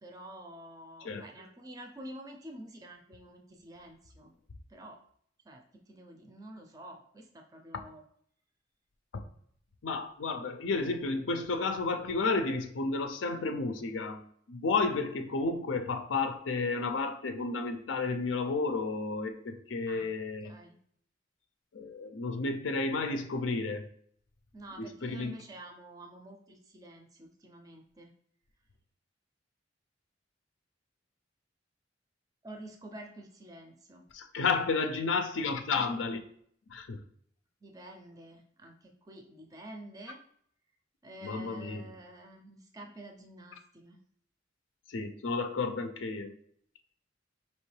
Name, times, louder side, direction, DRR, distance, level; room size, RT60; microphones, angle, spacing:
voice 1, 0.0-4.3 4.7-5.0 5.5-8.0 19.9-20.1 20.4-20.8 24.5-28.1 32.4-34.0 37.6-40.2 41.0-44.0, right 1 dB, 20° right, 2 dB, 0.4 m, -49 dB
voice 2, 9.8-14.2 14.5-20.5 21.7-23.9 24.7-25.4 34.1-36.2 36.7-37.0 41.2-41.8 44.9-46.3, left 3 dB, 90° left, 6 dB, 0.5 m, -32 dB
4.3 x 3.0 x 3.2 m, 0.63 s
head